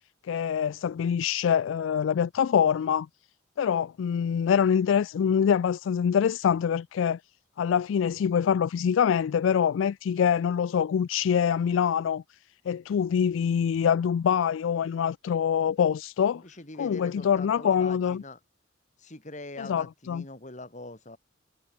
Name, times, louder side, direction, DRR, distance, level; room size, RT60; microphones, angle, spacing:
voice 1, 0.3-3.1 3.6-7.2 7.6-12.2 12.7-16.4 16.8-18.2 19.6-20.2, left 8 dB, 80° left, 0.3 m, -25 dB
voice 2, 16.3-18.4 19.0-21.2, left 2 dB, 40° left, 3.6 m, -43 dB
head